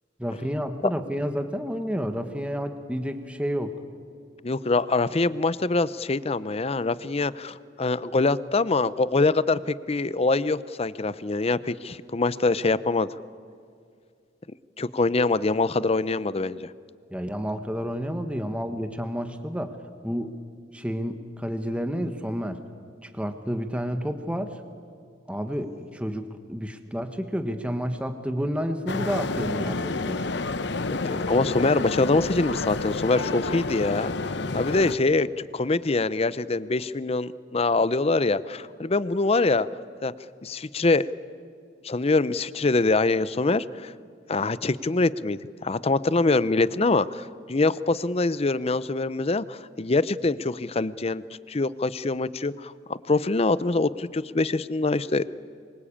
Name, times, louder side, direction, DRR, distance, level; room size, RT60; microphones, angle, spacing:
voice 1, 0.2-3.8 17.1-19.8 20.0-20.3 20.7-22.6 23.0-24.6 25.3-30.2, equal, 5° right, 7 dB, 1.3 m, -30 dB
voice 2, 4.4-13.1 14.8-16.7 31.0-34.1 34.5-39.7 40.0-40.1 40.4-41.1 41.8-43.9 44.3-55.3, left 3 dB, 35° left, 17 dB, 0.6 m, -24 dB
sound 1, 28.9-35.0, left 3 dB, 65° left, 0.9 m, -29 dB
26.0 x 24.0 x 8.7 m, 2.2 s
head